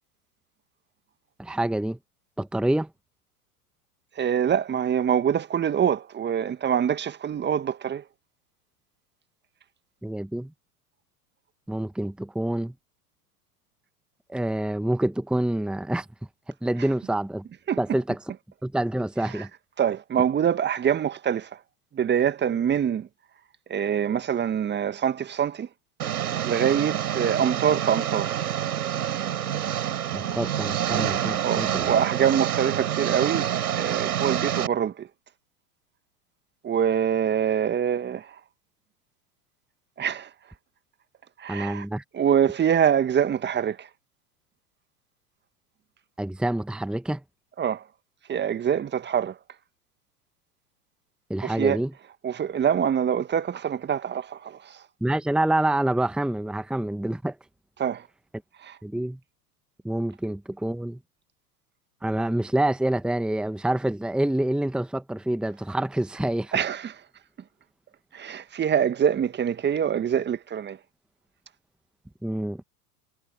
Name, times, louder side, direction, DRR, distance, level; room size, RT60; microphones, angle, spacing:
voice 1, 1.4-2.0 2.4-2.9 10.0-10.5 11.7-12.7 14.3-16.1 16.6-17.5 17.8-18.2 18.6-19.5 30.1-31.9 41.5-42.0 46.2-47.2 51.3-51.9 55.0-57.3 58.8-59.2 59.8-61.0 62.0-66.5 72.2-72.6, right 1 dB, ahead, 1.4 m, -27 dB
voice 2, 4.1-8.0 17.7-17.8 19.3-19.4 19.8-21.6 21.9-23.1 23.7-25.7 26.4-28.4 31.4-33.5 33.7-35.1 36.6-38.4 40.0-40.3 41.4-41.8 42.1-43.9 47.6-47.8 48.3-49.4 51.4-51.8 52.2-54.8 57.8-58.1 58.6-58.8 66.5-67.0 68.1-70.8, right 8 dB, 25° right, 1.7 m, -25 dB
Engine, 26.0-34.7, right 10 dB, 70° right, 6.3 m, -27 dB
figure-of-eight pair, 90°, 46 cm